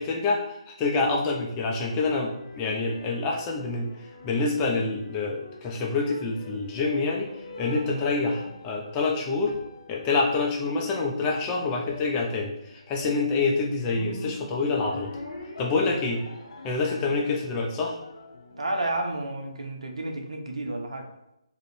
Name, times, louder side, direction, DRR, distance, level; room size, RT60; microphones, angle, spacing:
voice 1, 0.0-3.9 4.2-7.3 7.6-9.5 9.9-15.1 15.6-16.2 16.6-18.0, left 3 dB, 20° left, 0 dB, 0.4 m, -27 dB
sound 1, 1.1-19.6, left 2 dB, 60° left, 0.6 m, -45 dB
voice 2, 18.5-21.1, right 2 dB, 65° right, 3 dB, 0.5 m, -31 dB
3.6 x 2.1 x 2.7 m, 0.84 s
figure-of-eight pair, 140°, 3 cm